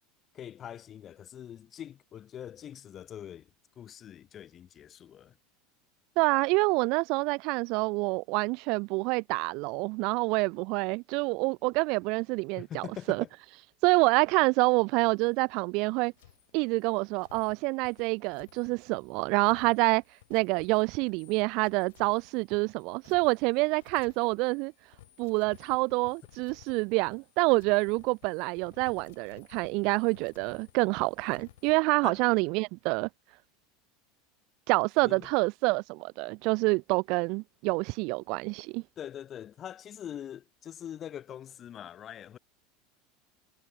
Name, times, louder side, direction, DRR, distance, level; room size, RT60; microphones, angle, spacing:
voice 1, 0.3-3.5 3.8-5.4 12.6-13.3 32.0-32.2 35.0-35.3 39.0-42.4, left 10 dB, 35° left, 2.3 m, -43 dB
voice 2, 6.2-13.2 13.8-16.1 16.5-20.0 20.3-24.7 25.2-33.1 34.7-38.8, right 28 dB, 60° right, 0.6 m, -27 dB
sound 1, 14.0-14.7 15.0-15.3 16.1-31.7, left 16 dB, 85° left, 3.8 m, -58 dB
supercardioid pair, 110°, 0 cm